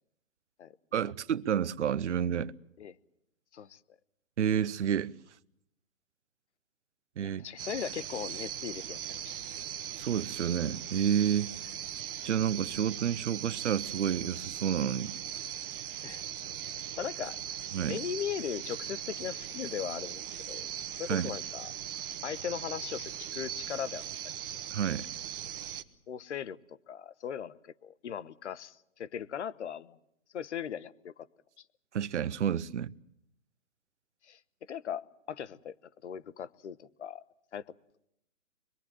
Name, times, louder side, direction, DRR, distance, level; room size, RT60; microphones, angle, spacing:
voice 1, 0.9-2.5 4.4-5.1 7.2-7.4 10.0-11.5 12.2-15.1 17.7-18.0 21.1-21.3 24.7-25.1 31.9-32.9, right 9 dB, 60° right, 0.9 m, -30 dB
voice 2, 7.2-9.3 16.0-16.3 16.6-17.4 17.9-20.7 21.0-21.7 22.2-24.0 26.1-30.0 30.3-31.3 34.2-34.4 34.7-35.7 36.0-37.2 37.5-37.6, left 8 dB, 60° left, 1.2 m, -38 dB
sound 1, 7.6-25.8, right 10 dB, 45° right, 1.5 m, -39 dB
25.5 x 22.5 x 7.7 m
hypercardioid pair, 135°, 39 cm